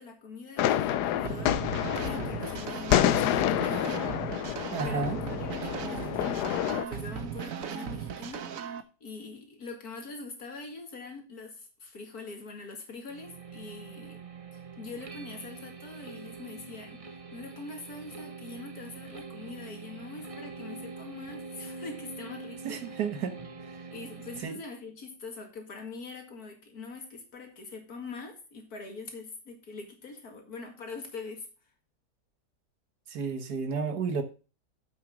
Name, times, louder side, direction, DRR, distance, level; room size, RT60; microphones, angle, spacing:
voice 1, 0.0-1.6 1.9-14.2 14.5-23.0 23.9-31.5, left 3 dB, 70° left, 3 dB, 2.6 m, -43 dB
sound 1, 0.6-6.9, left 11 dB, 90° left, 1.2 m, -28 dB
sound 2, 1.2-8.8, right 7 dB, 65° right, 1.2 m, -37 dB
voice 2, 4.7-5.2 22.6-23.4 23.7-23.8 24.4-24.6 33.1-34.2, right 5 dB, 80° right, 8 dB, 1.8 m, -31 dB
sound 3, 13.1-24.4, right 4 dB, 35° right, 0.6 m, -44 dB
7.8 x 6.3 x 6.1 m, 0.34 s
omnidirectional pair, 1.7 m